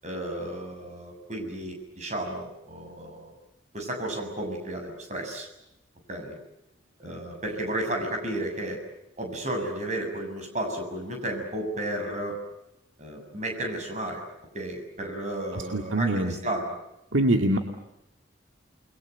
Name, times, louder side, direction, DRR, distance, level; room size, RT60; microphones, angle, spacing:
voice 1, 0.0-3.3 3.7-5.5 6.1-6.4 7.0-8.8 9.2-12.4 13.0-14.2 14.5-16.8, right 1 dB, 35° right, 3 dB, 7.0 m, -33 dB
voice 2, 15.7-16.3 17.1-17.6, right 1 dB, 75° right, 4 dB, 2.3 m, -23 dB
29.5 x 22.5 x 8.1 m, 0.85 s
head